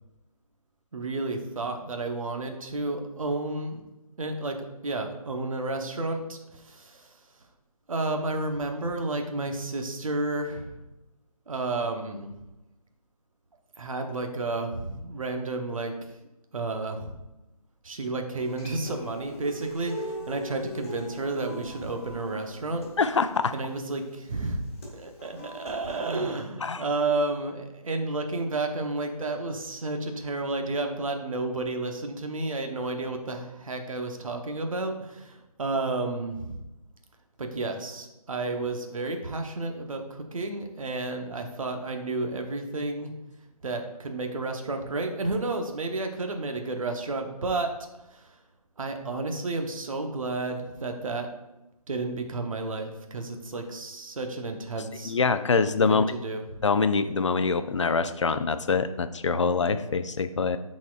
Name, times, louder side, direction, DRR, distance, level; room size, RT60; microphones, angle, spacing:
voice 1, 0.9-3.8 4.2-4.6 4.8-7.1 7.9-10.8 11.5-12.3 13.8-15.9 16.5-17.2 17.8-22.8 23.5-24.6 24.9-36.6 37.4-43.1 43.6-47.7 48.1-48.3 48.8-51.3 51.9-55.1 55.9-56.4, right 2 dB, 60° right, 4 dB, 0.9 m, -31 dB
Human voice / Acoustic guitar, 18.4-26.4, equal, 25° left, 1.7 m, -41 dB
voice 2, 23.0-23.5 26.6-26.8 55.0-56.0 56.6-60.6, left 4 dB, 50° left, 11 dB, 0.4 m, -24 dB
10.5 x 4.2 x 2.4 m, 0.98 s
figure-of-eight pair, 170°, 20 cm